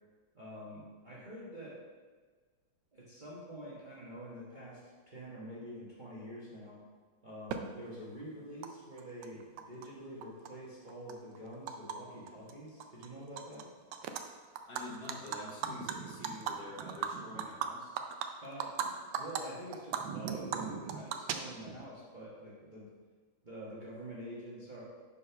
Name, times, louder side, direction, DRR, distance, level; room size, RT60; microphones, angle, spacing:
voice 1, 0.3-1.8 2.9-4.8 5.1-6.8 7.2-13.6 18.4-22.9 23.4-24.8, equal, 30° right, -8 dB, 1.1 m, -46 dB
Animal, 7.5-7.6 8.6-8.7 9.0-9.9 10.2-12.0 12.3-12.5 12.8-13.6 13.9-14.2 14.6-18.9 19.1-19.4 19.7-21.8, right 8 dB, 75° right, 1.2 m, -37 dB
voice 2, 14.7-18.0, left 2 dB, 60° left, -3 dB, 1.6 m, -47 dB
5.4 x 4.3 x 5.6 m, 1.5 s
omnidirectional pair, 2.2 m